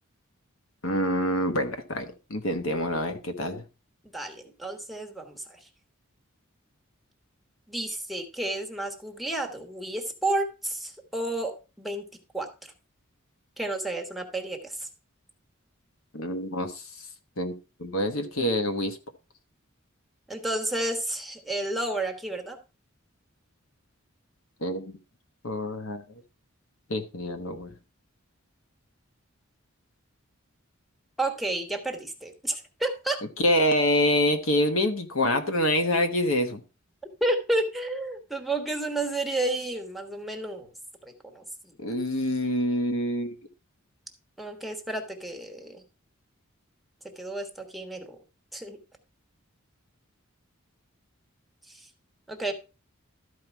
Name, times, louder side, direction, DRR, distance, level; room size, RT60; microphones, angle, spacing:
voice 1, 0.8-3.6 16.1-16.8 17.4-17.5 17.8-19.0 24.6-25.0 25.4-26.0 26.9-27.7 33.4-36.6 41.8-43.3, left 1 dB, 70° left, 7 dB, 1.2 m, -26 dB
voice 2, 4.0-5.6 7.7-12.1 12.3-12.7 13.6-14.9 20.3-22.6 31.2-33.2 37.2-40.7 41.0-41.7 44.4-45.8 47.2-48.2 48.5-48.8 51.7-51.8 52.3-52.5, right 2 dB, ahead, 3 dB, 1.3 m, -31 dB
13.0 x 4.8 x 4.5 m, 0.31 s
head